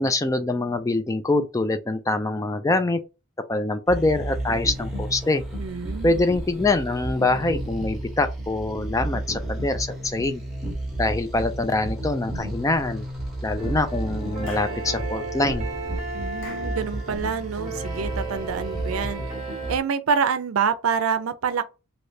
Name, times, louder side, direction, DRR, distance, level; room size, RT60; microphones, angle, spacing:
voice 1, 0.0-3.0 3.5-5.4 6.0-10.4 11.0-13.1 13.4-15.7, left 2 dB, 15° left, 0.3 m, -24 dB
sound 1, 3.9-19.8, right 1 dB, ahead, 1.1 m, -32 dB
voice 2, 5.6-6.2 16.1-19.2 19.7-21.6, right 6 dB, 85° right, 0.5 m, -26 dB
sound 2, 13.6-19.8, right 3 dB, 35° right, 0.9 m, -35 dB
Clapping / Chirp tweet, 14.5-14.8 16.4-16.8, left 2 dB, 60° left, 1.2 m, -44 dB
3.2 x 2.8 x 2.7 m
head